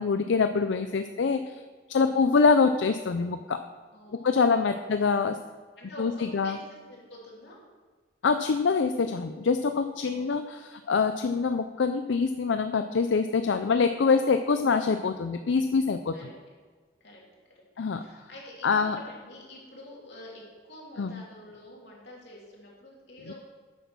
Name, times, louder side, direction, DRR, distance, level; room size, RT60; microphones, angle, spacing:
voice 1, 0.0-1.6 1.9-3.6 4.1-5.4 6.0-6.6 8.2-16.1 17.8-18.0 18.6-19.0 21.0-21.2, left 5 dB, 85° left, 8 dB, 0.5 m, -25 dB
voice 2, 3.9-5.2 5.8-6.6 6.9-7.6 10.0-10.4 16.1-16.3 17.0-17.2 17.9-23.3, left 1 dB, 65° left, -4 dB, 3.2 m, -47 dB
9.3 x 8.2 x 6.0 m, 1.5 s
head